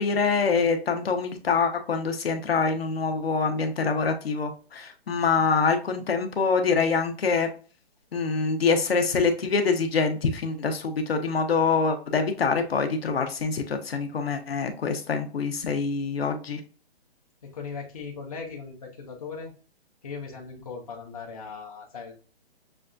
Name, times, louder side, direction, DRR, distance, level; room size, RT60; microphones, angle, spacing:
voice 1, 0.0-7.5 8.1-16.6, left 5 dB, 65° left, 6 dB, 0.8 m, -25 dB
voice 2, 17.4-19.5 20.0-22.1, left 5 dB, 35° left, 0 dB, 0.7 m, -38 dB
6.1 x 2.3 x 2.5 m, 0.38 s
hypercardioid pair, 175°, 32 cm